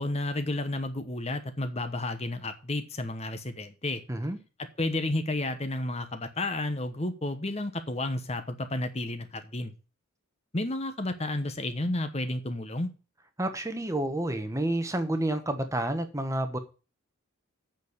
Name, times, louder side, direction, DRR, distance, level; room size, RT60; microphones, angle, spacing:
voice 1, 0.0-4.0 4.6-9.7 10.5-12.9, left 2 dB, 30° left, 1.0 m, -31 dB
voice 2, 4.1-4.4 13.4-16.6, right 1 dB, 15° right, 1.1 m, -29 dB
8.2 x 6.4 x 8.0 m
head